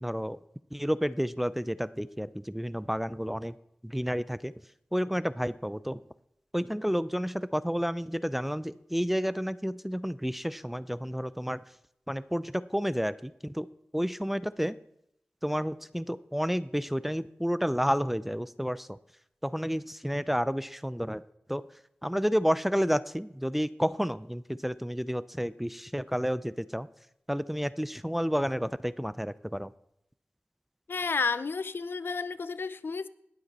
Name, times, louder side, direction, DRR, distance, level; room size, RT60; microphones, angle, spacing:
voice 1, 0.0-0.4 0.7-3.5 3.9-4.5 4.9-6.0 6.5-11.6 12.1-12.4 12.7-13.7 13.9-14.7 15.4-18.9 19.4-21.2 21.5-21.6 22.0-26.9 27.3-29.7, equal, 5° right, 17 dB, 0.4 m, -30 dB
voice 2, 30.9-33.1, left 4 dB, 65° left, 16 dB, 0.5 m, -31 dB
19.5 x 7.9 x 4.2 m, 0.78 s
wide cardioid pair, 65°, 4 cm